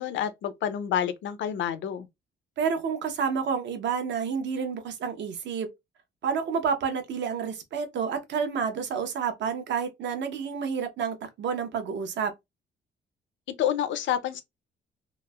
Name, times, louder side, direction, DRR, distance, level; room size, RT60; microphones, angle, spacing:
voice 1, 0.0-2.1 13.6-14.4, left 9 dB, 70° left, 0.5 m, -28 dB
voice 2, 2.6-5.7 6.2-12.3, right 6 dB, 65° right, 0.7 m, -29 dB
3.0 x 2.0 x 2.2 m
cardioid pair, 90°, 20 cm